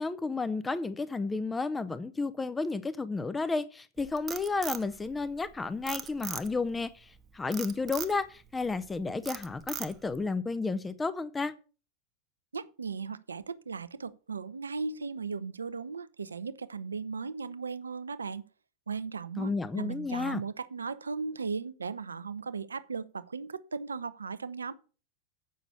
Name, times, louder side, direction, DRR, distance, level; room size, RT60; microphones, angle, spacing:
voice 1, 0.0-11.5 19.4-20.4, left 3 dB, 10° left, 0.5 m, -32 dB
Frog, 4.0-5.5 5.9-6.7 7.5-8.2 8.7-8.9 9.3-10.2, right 8 dB, 25° right, 0.8 m, -39 dB
voice 2, 12.5-18.4 18.9-24.7, right 5 dB, 75° right, 0.6 m, -37 dB
8.4 x 6.0 x 6.7 m
figure-of-eight pair, 90°, 0 cm